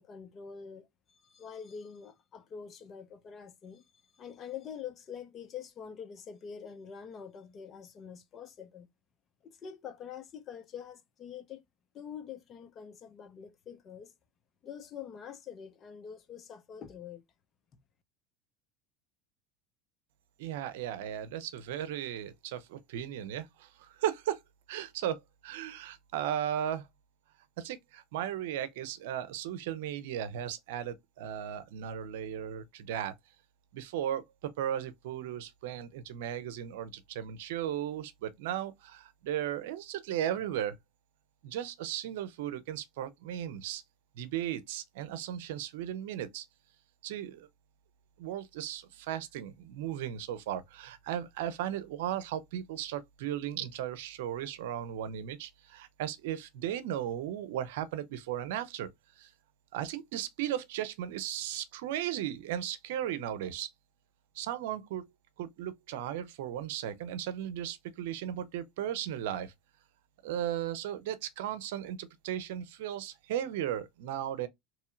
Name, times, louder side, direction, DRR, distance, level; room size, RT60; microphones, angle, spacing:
voice 1, 0.0-3.8 4.1-8.9 9.4-11.6 11.9-14.1 14.6-17.2, left 7 dB, 40° left, 1.0 m, -45 dB
voice 2, 20.4-24.4 24.7-26.9 27.6-33.1 33.7-40.8 41.4-43.8 44.2-46.5 47.0-47.5 48.2-58.9 59.2-59.3 59.7-63.7 64.3-65.0 65.4-69.5 70.2-74.5, right 11 dB, 75° right, 0.6 m, -36 dB
4.1 x 3.0 x 2.5 m
hypercardioid pair, 95°, 0 cm